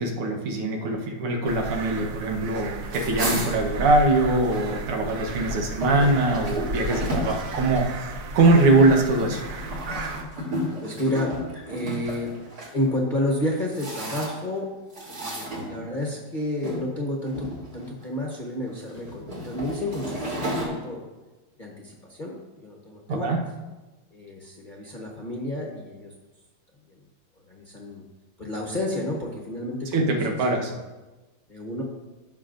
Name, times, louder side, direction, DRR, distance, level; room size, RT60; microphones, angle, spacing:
voice 1, 0.0-7.8 8.3-9.4 23.1-23.4 29.9-30.7, right 2 dB, 90° right, 1 dB, 2.1 m, -22 dB
sound 1, 1.4-10.2, right 2 dB, 70° right, 0.8 m, -34 dB
sound 2, 2.8-4.8 5.1-12.7 13.3-14.6 14.9-16.1 16.6-16.9 17.3-18.0 18.7-20.7, equal, 50° right, 2.5 m, -33 dB
voice 2, 10.8-11.3 11.6-12.3 12.7-14.7 15.1-21.0 21.6-23.3 24.1-26.1 27.5-28.0 28.4-30.7 31.5-31.8, left 1 dB, 30° left, -2 dB, 0.9 m, -30 dB
15.5 x 6.2 x 2.5 m, 1.2 s
omnidirectional pair, 2.4 m